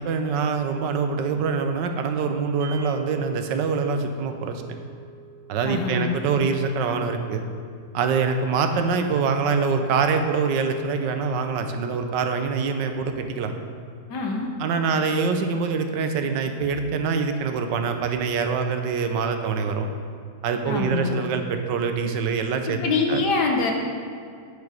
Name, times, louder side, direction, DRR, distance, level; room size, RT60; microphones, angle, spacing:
voice 1, 0.0-4.6 5.5-7.4 7.9-13.5 14.6-19.9 20.4-22.8 23.1-23.2, right 5 dB, 85° right, 6 dB, 1.4 m, -24 dB
sound 1, 2.6-12.9, right 5 dB, 45° right, 0.8 m, -48 dB
voice 2, 5.6-6.2 14.1-14.5 20.6-21.1 22.7-23.7, left 4 dB, 70° left, 1 dB, 1.7 m, -24 dB
8.8 x 8.2 x 5.0 m, 2.2 s
omnidirectional pair, 1.9 m